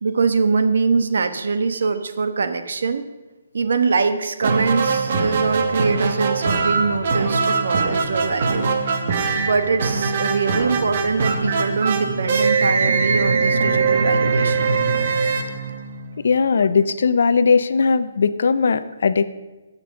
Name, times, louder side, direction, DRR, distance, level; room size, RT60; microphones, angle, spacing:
voice 1, 0.0-3.1 3.5-8.8 9.3-14.7, right 4 dB, 65° right, 9 dB, 1.1 m, -23 dB
sound 1, 4.4-16.3, right 4 dB, 40° right, 1.2 m, -21 dB
voice 2, 16.2-19.2, left 5 dB, 55° left, 13 dB, 0.6 m, -18 dB
15.0 x 6.0 x 6.5 m, 1.2 s
hypercardioid pair, 175°, 0 cm